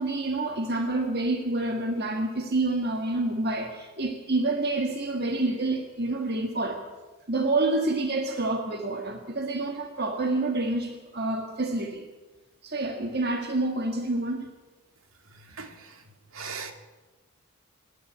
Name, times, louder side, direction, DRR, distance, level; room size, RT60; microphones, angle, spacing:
voice 1, 0.0-6.8 7.3-12.1 12.6-14.5, right 2 dB, 45° right, 4 dB, 1.8 m, -28 dB
voice 2, 15.3-16.0 16.3-16.7, right 5 dB, 65° right, 6 dB, 2.3 m, -39 dB
26.5 x 10.5 x 10.0 m, 1.2 s
head